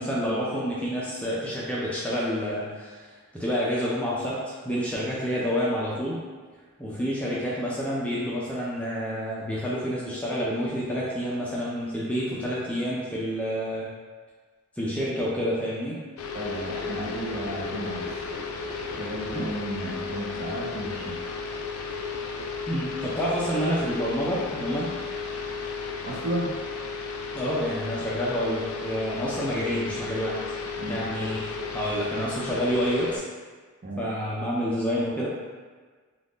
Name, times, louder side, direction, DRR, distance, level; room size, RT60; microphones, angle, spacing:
voice 1, 0.0-3.0 3.3-6.2 6.8-13.9 14.8-16.0 19.3-19.5 22.7-24.9 27.3-30.4 30.9-33.2 34.0-35.3, equal, 5° left, -7 dB, 0.4 m, -28 dB
sound 1, 16.2-33.2, left 4 dB, 90° left, 0.4 m, -34 dB
voice 2, 16.3-18.1 18.8-21.2 26.1-26.6 30.8-31.1 33.8-34.1, right 1 dB, 45° right, -4 dB, 0.6 m, -33 dB
2.5 x 2.4 x 3.5 m, 1.5 s
head